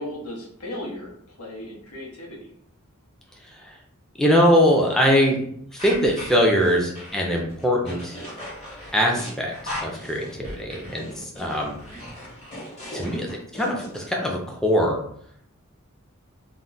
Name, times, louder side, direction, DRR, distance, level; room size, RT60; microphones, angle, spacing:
voice 1, 0.0-2.5, left 1 dB, 85° left, -2 dB, 0.8 m, -36 dB
voice 2, 3.4-3.8 4.2-5.4 5.7-8.2 8.9-9.5 9.8-11.8 12.9-15.0, equal, ahead, -1 dB, 0.3 m, -22 dB
sound 1, 5.8-14.0, left 1 dB, 30° left, 0.9 m, -37 dB
2.2 x 2.0 x 3.7 m, 0.66 s
head